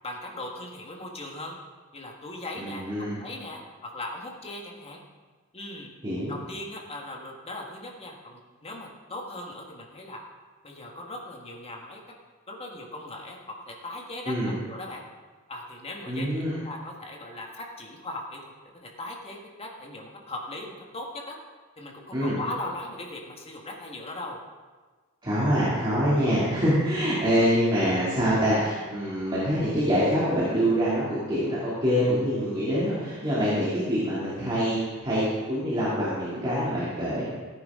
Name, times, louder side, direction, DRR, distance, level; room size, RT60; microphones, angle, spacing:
voice 1, 0.0-1.6 1.9-2.8 3.1-3.6 3.9-5.0 5.5-5.9 6.3-10.2 10.6-12.0 12.5-13.4 13.7-15.0 15.5-18.5 18.8-21.3 21.8-24.4, left 2 dB, 30° left, 0 dB, 1.6 m, -39 dB
voice 2, 2.6-3.2 6.0-6.3 14.2-14.6 16.1-16.6 22.1-22.4 25.2-37.3, equal, 20° right, -10 dB, 2.7 m, -25 dB
15.0 x 9.6 x 3.7 m, 1.4 s
head